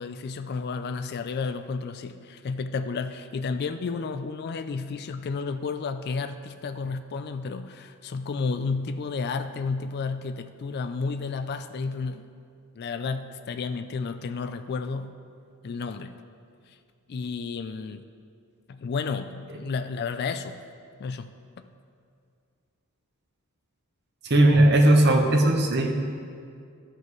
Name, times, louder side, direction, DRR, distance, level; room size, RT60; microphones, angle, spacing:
voice 1, 0.0-12.3 12.8-15.2 15.6-16.2 17.1-18.0 18.7-20.6 21.0-21.6, left 4 dB, 45° left, 9 dB, 0.3 m, -32 dB
voice 2, 24.2-25.9, right 1 dB, 50° right, 3 dB, 1.0 m, -18 dB
13.0 x 7.6 x 3.1 m, 2.3 s
head